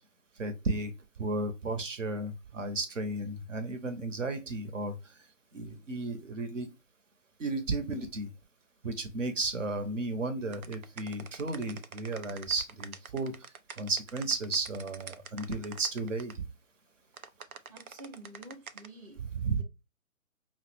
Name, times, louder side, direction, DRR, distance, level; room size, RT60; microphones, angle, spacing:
voice 1, 0.4-0.9 1.2-4.9 5.5-6.7 7.4-8.3 8.8-13.3 13.8-16.3 19.2-19.6, right 3 dB, 55° right, 1.0 m, -33 dB
sound 1, 10.5-16.3 17.1-18.9, right 6 dB, 75° right, 0.6 m, -46 dB
voice 2, 17.7-19.6, right 1 dB, 25° right, 0.7 m, -49 dB
5.4 x 2.1 x 3.2 m
figure-of-eight pair, 140°, 44 cm